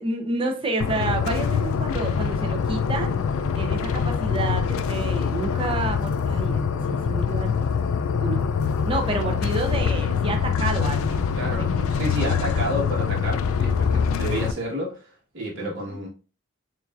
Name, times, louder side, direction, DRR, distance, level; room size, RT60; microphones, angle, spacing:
voice 1, 0.0-3.2 3.5-7.7 8.2-8.4 8.9-11.4 11.8-11.9 12.1-12.3 15.6-15.8, right 2 dB, 25° right, 0.6 m, -29 dB
sound 1, 0.8-14.5, left 6 dB, 70° left, 0.3 m, -24 dB
voice 2, 11.3-16.1, equal, 55° right, 1.3 m, -31 dB
6.4 x 2.5 x 2.4 m
head